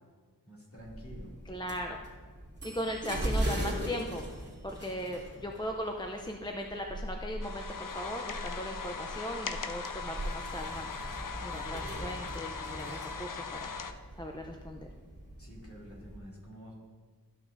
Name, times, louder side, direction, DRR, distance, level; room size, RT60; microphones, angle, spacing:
voice 1, 0.5-1.3 15.4-16.8, equal, 35° left, -5 dB, 2.5 m, -49 dB
sound 1, 0.8-16.2, right 1 dB, 25° right, 2.4 m, -40 dB
voice 2, 1.5-2.0 2.6-4.2 4.6-7.7 7.9-10.9 11.4-13.7 14.2-14.9, equal, 10° left, 2 dB, 0.6 m, -38 dB
sound 2, 7.4-13.9, left 5 dB, 60° left, 0.6 m, -40 dB
13.0 x 6.0 x 2.6 m, 1.5 s
wide cardioid pair, 55°, 38 cm